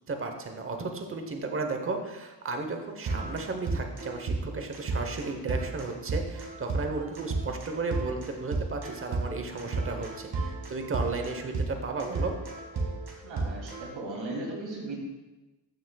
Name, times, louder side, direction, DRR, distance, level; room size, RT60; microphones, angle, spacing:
voice 1, 0.1-12.3, right 3 dB, 30° right, 4 dB, 0.9 m, -34 dB
sound 1, 3.0-13.8, right 3 dB, 65° right, 1.9 m, -33 dB
voice 2, 13.2-15.0, right 2 dB, 85° right, -2 dB, 2.7 m, -37 dB
14.0 x 6.1 x 2.3 m, 1.1 s
wide cardioid pair, 145°, 45 cm